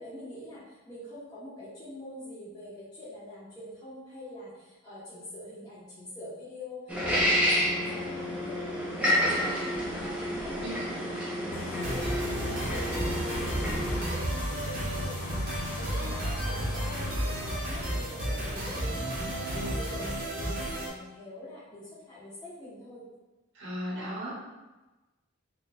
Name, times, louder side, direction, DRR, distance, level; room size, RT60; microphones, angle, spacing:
voice 1, 0.0-12.1 12.4-23.0, left 1 dB, 20° left, -12 dB, 1.2 m, -45 dB
sound 1, 6.9-14.0, equal, 5° right, 0.6 m, -29 dB
sound 2, 11.5-18.0, left 2 dB, 80° left, 0.5 m, -40 dB
sound 3, 11.8-20.9, right 1 dB, 40° right, 1.0 m, -32 dB
voice 2, 23.5-24.3, equal, 65° right, -6 dB, 1.0 m, -36 dB
4.2 x 3.0 x 2.6 m, 1.1 s
head